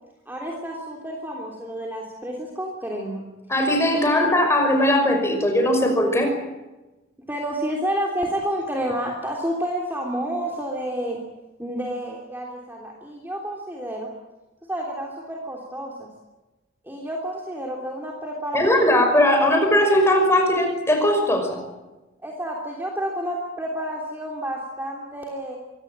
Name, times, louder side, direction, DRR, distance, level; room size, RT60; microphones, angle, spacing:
voice 1, 0.3-3.2 3.9-4.3 7.3-11.2 11.6-14.1 14.7-16.1 16.9-18.6 22.2-25.6, equal, 10° right, -1 dB, 3.2 m, -29 dB
voice 2, 3.5-6.3 18.5-21.6, left 1 dB, 15° left, 4 dB, 5.6 m, -19 dB
25.0 x 17.5 x 9.0 m, 1.1 s
head